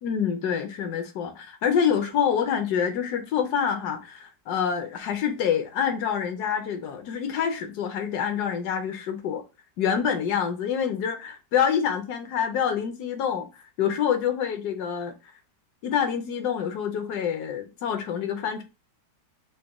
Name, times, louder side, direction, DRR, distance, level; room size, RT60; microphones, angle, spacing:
voice 1, 0.0-9.4 9.8-15.3 15.8-18.6, left 8 dB, 70° left, 1.1 m, -27 dB
4.0 x 2.1 x 3.4 m
omnidirectional pair, 1.9 m